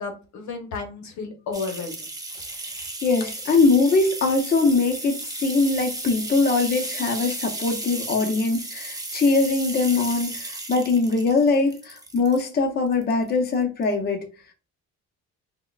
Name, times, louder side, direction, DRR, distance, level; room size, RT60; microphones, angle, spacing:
voice 1, 0.0-2.1, left 4 dB, 70° left, 0.8 m, -32 dB
sound 1, 1.5-12.5 12.9-13.5 13.8-13.9, right 2 dB, 10° right, 0.6 m, -34 dB
voice 2, 3.0-14.2, left 3 dB, 30° left, 0.6 m, -22 dB
3.5 x 2.1 x 2.3 m
cardioid pair, 90°, 30 cm